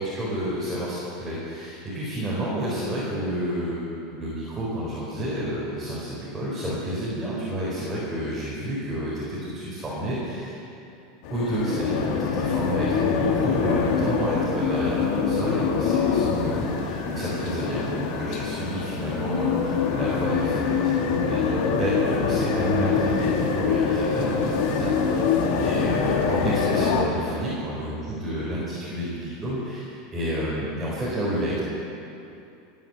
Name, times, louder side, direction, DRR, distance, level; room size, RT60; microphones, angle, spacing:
voice 1, 0.0-10.6 11.3-31.6, right 1 dB, 10° right, -8 dB, 4.5 m, -30 dB
sound 1, 11.2-27.0, left 6 dB, 60° left, 2.0 m, -24 dB
18.0 x 9.4 x 8.0 m, 2.7 s
supercardioid pair, 145°, 0 cm